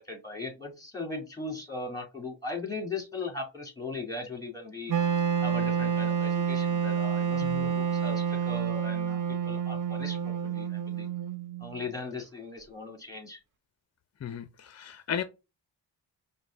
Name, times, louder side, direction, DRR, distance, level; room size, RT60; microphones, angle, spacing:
voice 1, 0.0-4.9 5.4-11.1 11.6-13.4, left 3 dB, 5° left, 2.1 m, -38 dB
Wind instrument woodwind instrument, 4.9-11.9, right 7 dB, 40° right, 0.6 m, -29 dB
voice 2, 14.2-15.2, left 8 dB, 35° left, 0.4 m, -35 dB
5.1 x 2.2 x 3.4 m
cardioid pair, 45°, 47 cm